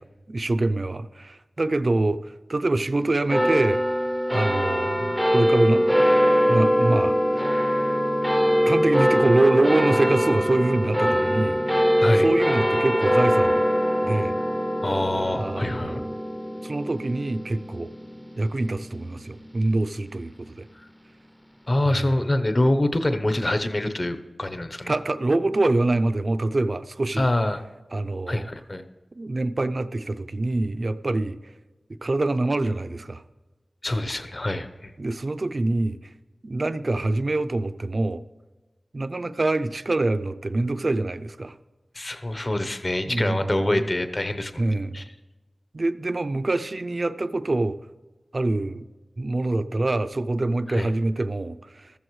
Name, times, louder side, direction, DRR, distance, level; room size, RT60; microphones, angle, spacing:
voice 1, 0.3-2.2 2.5-3.8 4.3-5.9 6.5-7.4 8.7-11.6 12.2-13.7 14.0-14.3 15.4-16.2 16.6-17.9 18.4-20.7 21.9-22.1 24.9-27.3 27.9-28.5 29.2-31.4 32.0-33.2 35.0-36.0 36.4-38.2 38.9-41.5 43.1-43.8 44.6-45.0 45.7-47.8 48.3-48.9 49.2-51.9, right 2 dB, 45° right, 0.5 m, -25 dB
sound 1, 3.3-20.0, equal, 5° left, 0.6 m, -23 dB
voice 2, 14.8-16.0 21.7-24.9 27.2-27.6 28.3-28.8 33.8-34.9 41.9-44.5 44.9-45.1 50.7-50.9, left 1 dB, 35° left, 0.9 m, -25 dB
14.0 x 14.0 x 3.2 m
wide cardioid pair, 85°, 0 cm